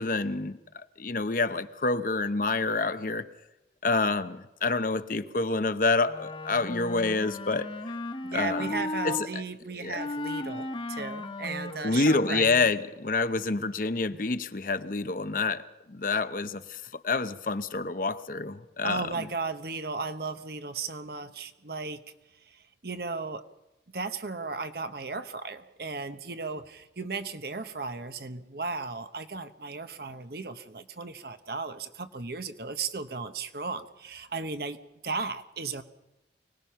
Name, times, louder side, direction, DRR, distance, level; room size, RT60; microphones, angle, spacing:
voice 1, 0.0-3.2 3.8-7.7 8.3-9.4 9.8-10.0 11.8-19.1, left 3 dB, 50° left, 11 dB, 0.8 m, -28 dB
Wind instrument woodwind instrument, 6.1-9.3 10.0-12.7, left 1 dB, 30° left, 1.4 m, -36 dB
voice 2, 8.2-12.5 18.8-22.0 22.5-23.4 23.9-34.8 35.0-35.8, right 4 dB, 55° right, 9 dB, 1.1 m, -35 dB
24.5 x 19.0 x 5.7 m, 0.99 s
head